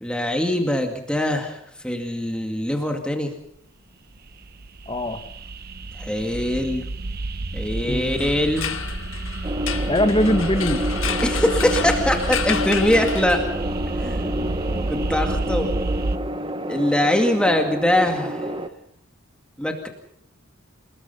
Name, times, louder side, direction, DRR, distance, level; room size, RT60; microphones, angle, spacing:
voice 1, 0.0-3.3 5.9-6.8 7.5-8.7 11.2-13.4 13.9-14.2 14.9-15.7 16.7-18.6 19.6-19.9, left 1 dB, 5° left, 3 dB, 2.2 m, -22 dB
sound 1, 4.1-16.2, right 2 dB, 50° right, 1.2 m, -29 dB
voice 2, 4.9-5.2 7.9-8.3 9.9-10.9 14.2-15.0, left 1 dB, 25° left, 8 dB, 1.9 m, -23 dB
sound 2, 8.1-13.8, left 8 dB, 75° left, 1.9 m, -31 dB
sound 3, 9.4-18.7, equal, 25° right, 1.2 m, -29 dB
29.5 x 19.5 x 5.6 m, 0.71 s
head